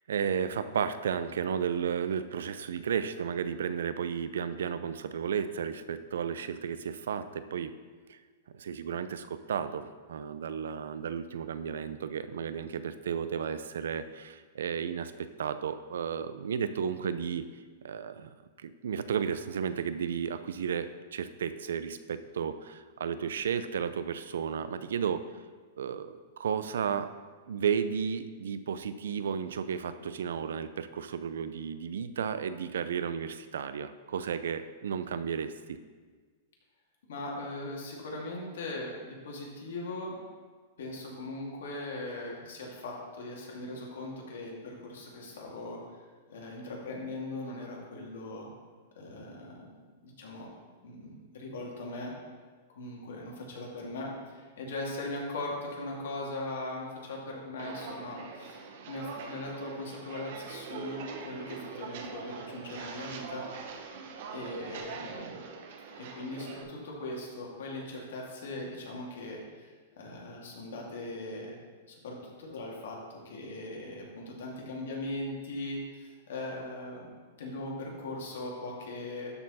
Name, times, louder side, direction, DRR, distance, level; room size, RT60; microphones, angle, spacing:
voice 1, 0.1-7.7 8.1-8.2 8.5-17.5 17.8-18.3 18.6-25.2 25.8-27.1 27.5-35.8, right 7 dB, 85° right, 12 dB, 0.5 m, -33 dB
voice 2, 37.1-40.2 40.8-48.5 49.0-49.8 50.0-50.5 50.8-52.1 52.7-63.5 64.3-65.4 65.9-69.7 70.0-71.5 71.9-77.1 77.4-79.3, left 2 dB, 75° left, -2 dB, 2.3 m, -39 dB
Walk footsteps, 57.6-66.6, right 5 dB, 60° right, 0.9 m, -43 dB
12.5 x 4.4 x 4.2 m, 1.5 s
supercardioid pair, 150°, 0 cm